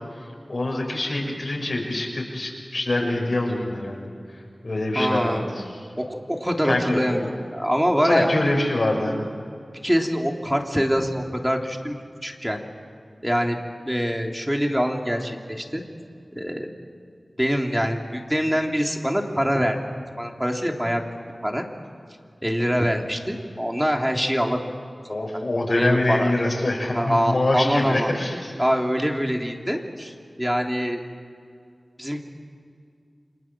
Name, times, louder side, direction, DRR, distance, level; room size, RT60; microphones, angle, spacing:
voice 1, 0.5-4.1 4.6-5.6 6.7-7.3 8.0-9.3 25.1-28.5, left 2 dB, 60° left, -1 dB, 6.4 m, -25 dB
voice 2, 4.9-5.4 6.0-8.3 9.8-11.9 12.2-12.6 13.2-13.6 13.9-15.8 16.3-16.7 17.4-19.8 20.2-21.0 21.4-21.6 22.4-24.6 25.1-25.2 25.7-26.3 26.9-28.1 28.6-31.0 32.0-32.2, equal, 5° right, 2 dB, 3.3 m, -24 dB
30.0 x 26.0 x 7.5 m, 2.3 s
wide cardioid pair, 55°, 0 cm